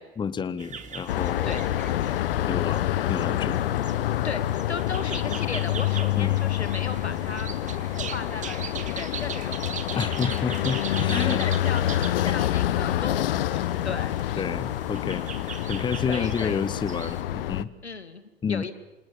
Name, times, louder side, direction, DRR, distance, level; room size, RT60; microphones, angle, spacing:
voice 1, 0.0-1.6 2.0-3.7 6.1-6.4 10.0-11.4 14.4-15.3 15.7-17.7 18.4-18.7, left 6 dB, 15° left, 16 dB, 1.0 m, -30 dB
sound 1, 0.6-17.2, right 7 dB, 25° right, 2.2 m, -40 dB
sound 2, 1.1-17.6, left 13 dB, 60° left, 1.1 m, -27 dB
voice 2, 4.2-7.5 7.9-10.2 11.1-11.8 12.2-14.4 16.0-16.6 17.8-18.2 18.5-18.7, left 4 dB, 85° left, 11 dB, 2.4 m, -36 dB
28.5 x 26.5 x 7.1 m, 1.0 s
figure-of-eight pair, 90°, 32 cm